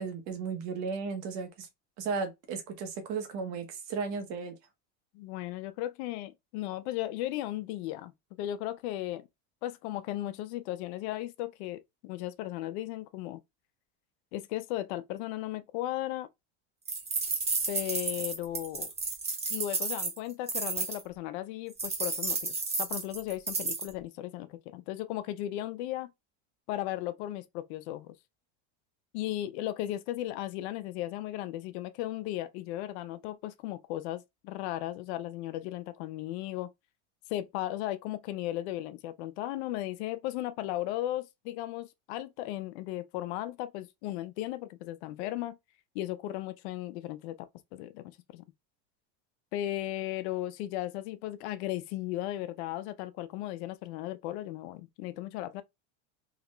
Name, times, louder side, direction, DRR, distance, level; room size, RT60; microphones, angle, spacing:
voice 1, 0.0-1.7 2.0-4.5, right 5 dB, 50° right, 1.4 m, -35 dB
voice 2, 5.1-8.1 8.4-9.3 9.6-13.4 14.3-16.3 17.7-18.9 19.5-26.1 26.7-28.1 29.1-36.7 37.3-45.6 45.9-48.4 49.5-55.6, left 14 dB, 65° left, 0.6 m, -36 dB
sound 1, 16.9-21.0 21.8-23.9, right 4 dB, 15° right, 1.1 m, -32 dB
3.7 x 2.8 x 3.2 m
supercardioid pair, 140°, 37 cm